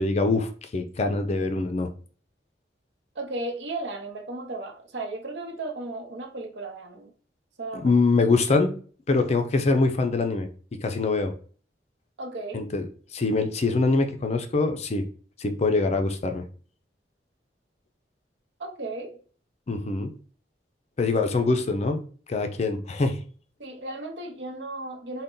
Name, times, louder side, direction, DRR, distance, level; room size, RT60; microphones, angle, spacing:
voice 1, 0.0-1.9 7.7-8.7 9.1-10.5 10.8-11.3 12.5-12.9 13.1-15.0 15.4-16.4 19.7-20.1 21.0-22.0 22.3-23.2, left 3 dB, 40° left, 0.4 m, -24 dB
voice 2, 3.1-7.1 7.6-8.0 12.2-12.6 18.6-19.2 23.6-25.2, right 2 dB, 80° right, 0.8 m, -35 dB
3.9 x 2.2 x 3.7 m
head